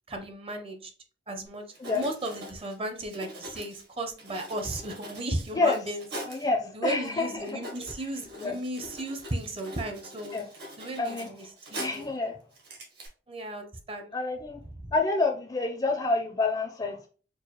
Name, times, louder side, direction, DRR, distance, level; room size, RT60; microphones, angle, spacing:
voice 1, 0.1-0.9 1.3-6.1 6.7-10.4 10.8-12.1 13.3-14.1 14.7-14.9, right 1 dB, 35° right, 5 dB, 0.6 m, -35 dB
Writing, 1.7-6.5 7.0-7.1 7.4-12.1 12.5-13.1, right 1 dB, 65° right, 1.3 m, -43 dB
voice 2, 6.3-7.6 8.4-8.6 10.3-10.5 11.0-11.3 11.7-12.4 14.1-14.6 14.9-17.1, left 3 dB, 25° left, 4 dB, 0.4 m, -28 dB
4.6 x 2.3 x 2.9 m, 0.39 s
head